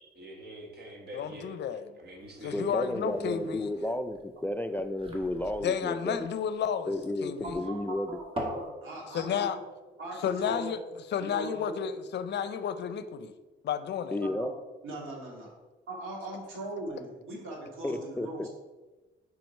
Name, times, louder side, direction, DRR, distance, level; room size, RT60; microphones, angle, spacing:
voice 1, 0.1-2.8, right 1 dB, 55° right, 2 dB, 1.6 m, -45 dB
voice 2, 1.1-1.9 2.4-3.7 5.6-6.9 7.2-7.6 9.1-9.6 10.2-10.8 11.1-13.3 13.6-14.2, left 8 dB, 60° left, 12 dB, 0.5 m, -32 dB
sound 1, 2.2-8.7, equal, 25° right, 1.8 m, -43 dB
voice 3, 2.5-6.3 6.9-8.1 14.1-14.5 17.8-18.5, left 1 dB, 10° left, 9 dB, 0.3 m, -32 dB
voice 4, 7.4-9.4 10.0-10.7 11.2-11.9 14.2-14.5 14.8-15.5 15.9-18.5, right 1 dB, 85° right, -2 dB, 2.1 m, -40 dB
4.9 x 4.6 x 5.3 m, 1.2 s
cardioid pair, 90°, 20 cm